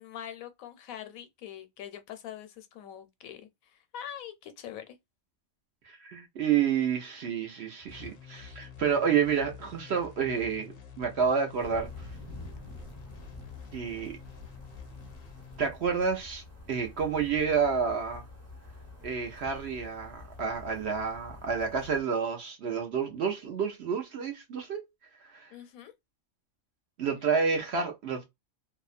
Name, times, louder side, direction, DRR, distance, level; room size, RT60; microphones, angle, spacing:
voice 1, 0.0-5.0 25.5-25.9, left 10 dB, 80° left, 1.0 m, -43 dB
voice 2, 5.8-11.9 13.7-14.1 15.6-18.3 19.0-24.8 25.3-25.5 27.0-28.2, right 6 dB, 60° right, 0.8 m, -29 dB
sound 1, 7.9-15.7, left 8 dB, 60° left, 0.7 m, -48 dB
sound 2, 11.6-22.0, left 2 dB, 15° right, 0.7 m, -47 dB
2.7 x 2.2 x 2.4 m
omnidirectional pair, 1.5 m